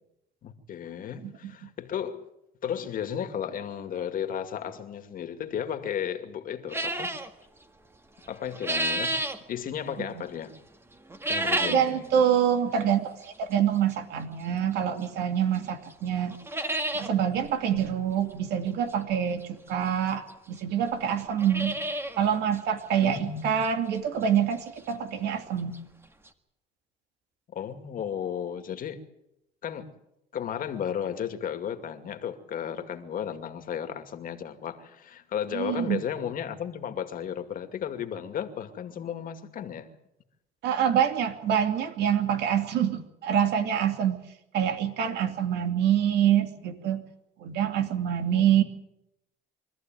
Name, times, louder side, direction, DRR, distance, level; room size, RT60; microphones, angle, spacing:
voice 1, 0.4-2.3 2.6-7.2 8.3-9.2 9.5-10.5 11.3-12.1 23.0-23.6 27.5-29.0 29.6-29.9 30.3-39.9 48.3-48.6, left 8 dB, 55° left, 2.4 m, -34 dB
sound 1, 6.7-7.3 8.2-9.4 11.1-11.9 12.3-12.4 13.2-13.3 15.0-15.1 15.6-15.7 15.9-16.0 16.3-17.1 17.5-17.6 17.8-17.9 19.4-19.5 20.3-20.4 20.6-20.7 21.2-22.2 22.5-22.6 23.1-23.2 23.6-23.7 25.5-25.6 25.7-25.8 26.3-26.4, right 1 dB, 15° right, 1.9 m, -30 dB
voice 2, 11.4-16.3 16.9-19.4 19.7-21.8 22.2-25.7 35.5-36.0 40.6-44.2 44.5-47.0 47.4-48.6, right 9 dB, 75° right, 2.8 m, -26 dB
24.5 x 14.5 x 9.3 m
cardioid pair, 110°, 17 cm